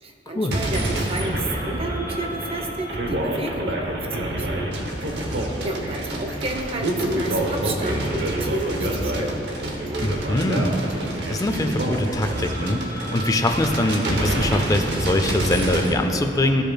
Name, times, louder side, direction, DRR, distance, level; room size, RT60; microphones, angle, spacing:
voice 1, 0.0-4.7 5.1-5.3 5.6-9.5, right 2 dB, 35° right, 3 dB, 0.6 m, -31 dB
sound 1, 0.5-15.9, right 1 dB, 70° right, 0.8 m, -27 dB
voice 2, 10.0-10.8 11.3-16.6, left 1 dB, 20° left, 6 dB, 0.4 m, -23 dB
14.5 x 5.1 x 2.3 m, 2.8 s
head